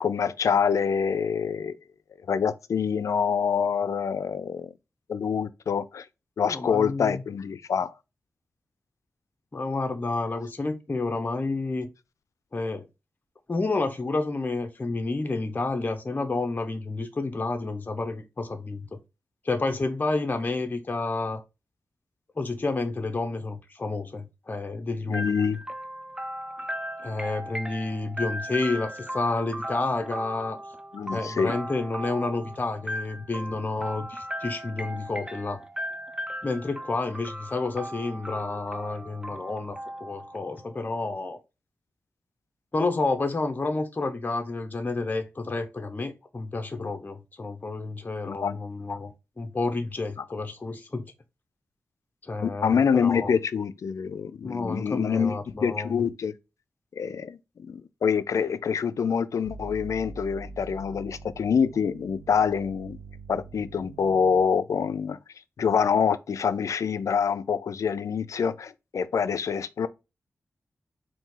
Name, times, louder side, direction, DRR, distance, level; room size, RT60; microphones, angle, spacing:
voice 1, 0.0-1.8 2.3-4.7 5.1-6.1 6.4-7.9 25.1-25.6 30.9-31.5 48.3-48.6 52.4-56.3 56.9-63.0 63.3-65.2 65.6-69.9, left 6 dB, 75° left, 0.4 m, -26 dB
voice 2, 6.5-7.2 9.5-11.9 12.5-12.9 13.5-19.0 19.4-21.4 22.4-25.4 27.0-30.6 31.1-35.6 36.4-41.4 42.7-49.1 49.4-51.0 52.2-53.3 54.4-56.0, left 3 dB, 35° left, 0.7 m, -30 dB
sound 1, 25.1-40.9, equal, 15° right, 0.5 m, -37 dB
sound 2, 59.4-64.4, right 3 dB, 80° right, 0.4 m, -44 dB
4.2 x 2.6 x 3.8 m
cardioid pair, 70°, 5 cm